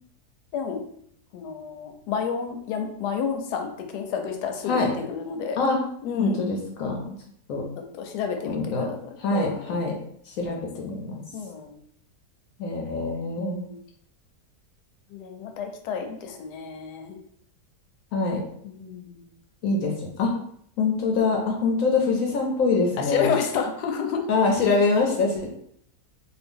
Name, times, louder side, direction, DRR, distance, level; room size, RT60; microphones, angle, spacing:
voice 1, 0.5-0.8 1.3-5.6 6.0-6.4 7.7-9.8 11.3-11.8 13.4-13.8 15.1-17.2 18.6-19.3 23.0-24.3, left 6 dB, 85° left, 5 dB, 1.1 m, -30 dB
voice 2, 6.2-7.0 7.5-7.7 8.4-8.9 9.2-10.0 10.3-11.2 12.6-13.6 18.1-18.4 19.6-20.3 20.8-23.3 24.3-25.5, left 3 dB, 70° left, 1 dB, 0.9 m, -24 dB
2.7 x 2.4 x 3.5 m, 0.68 s
omnidirectional pair, 1.7 m